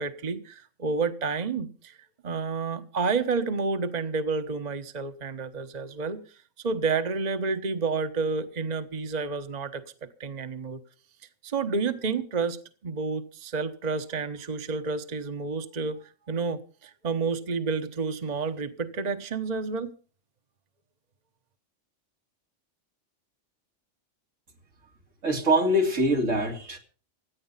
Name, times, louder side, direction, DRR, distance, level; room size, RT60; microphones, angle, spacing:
voice 1, 0.0-2.0 2.2-6.2 6.6-10.8 11.4-12.6 12.8-19.9, right 4 dB, 35° right, 1.2 m, -30 dB
voice 2, 25.2-26.8, equal, 90° right, 3.3 m, -23 dB
17.0 x 11.5 x 5.6 m
omnidirectional pair, 1.3 m